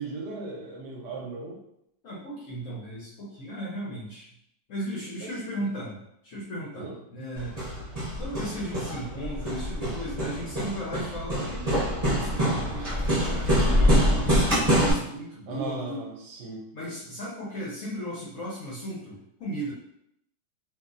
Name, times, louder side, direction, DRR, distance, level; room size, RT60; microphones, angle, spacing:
voice 1, 0.0-1.6 5.2-5.7 6.7-7.0 15.5-16.6, right 3 dB, 75° right, -1 dB, 1.1 m, -37 dB
voice 2, 2.0-4.3 4.7-7.6 8.2-11.5 12.0-16.1 16.7-19.7, right 1 dB, 65° left, -6 dB, 0.8 m, -36 dB
Hammer, 7.4-14.9, equal, 35° right, 0.6 m, -25 dB
2.8 x 2.5 x 2.5 m, 0.76 s
omnidirectional pair, 2.0 m